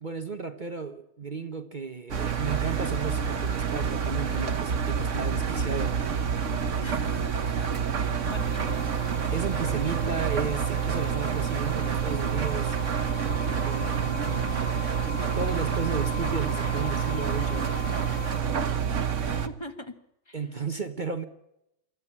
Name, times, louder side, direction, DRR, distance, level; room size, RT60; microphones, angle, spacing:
voice 1, 0.0-6.0 9.3-12.8 13.5-14.7 15.4-17.7 20.3-21.2, right 5 dB, 35° right, 8 dB, 1.1 m, -34 dB
Engine, 2.1-19.5, right 7 dB, 60° right, 1.6 m, -28 dB
voice 2, 6.8-8.8 11.2-11.7 13.3-13.6 18.9-20.0 20.3-20.5, left 2 dB, 20° left, 9 dB, 1.6 m, -44 dB
sound 1, 8.3-18.4, left 3 dB, 10° right, 2.2 m, -40 dB
25.0 x 14.0 x 8.6 m, 0.86 s
omnidirectional pair, 1.4 m